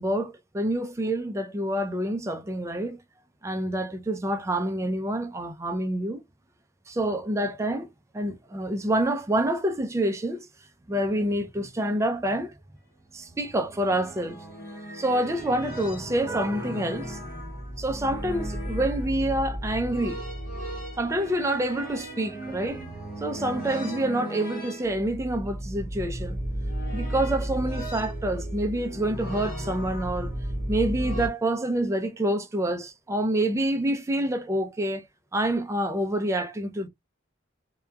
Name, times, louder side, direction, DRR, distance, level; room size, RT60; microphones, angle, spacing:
voice 1, 0.0-3.0 3.4-6.2 6.9-10.5 10.9-12.5 13.1-14.4 14.9-17.2 17.8-20.2 21.0-22.8 23.2-26.4 26.9-30.3 30.7-35.0 35.3-36.9, right 1 dB, 15° right, 0.4 m, -27 dB
sound 1, 13.0-31.3, right 1 dB, 50° left, 0.9 m, -34 dB
2.8 x 2.2 x 2.2 m
head